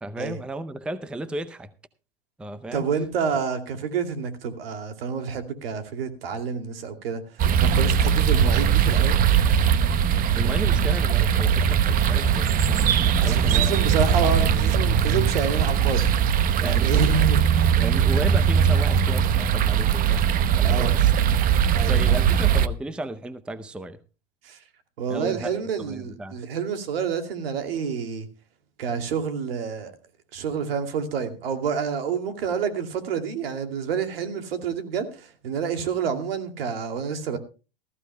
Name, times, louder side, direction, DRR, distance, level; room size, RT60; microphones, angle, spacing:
voice 1, 0.0-1.7 2.4-2.9 10.4-13.8 16.6-17.0 17.8-20.3 20.6-21.1 21.9-24.0 25.1-26.4, right 1 dB, 5° right, 0.6 m, -34 dB
voice 2, 2.7-7.2 7.6-9.2 13.2-16.1 16.6-17.7 20.7-21.0 21.7-22.4 24.4-24.6 25.0-28.3 28.8-29.9 30.3-37.4, right 6 dB, 75° right, 2.6 m, -28 dB
sound 1, 7.4-22.7, right 8 dB, 30° right, 0.8 m, -20 dB
19.0 x 14.5 x 2.2 m
hypercardioid pair, 120°, 29 cm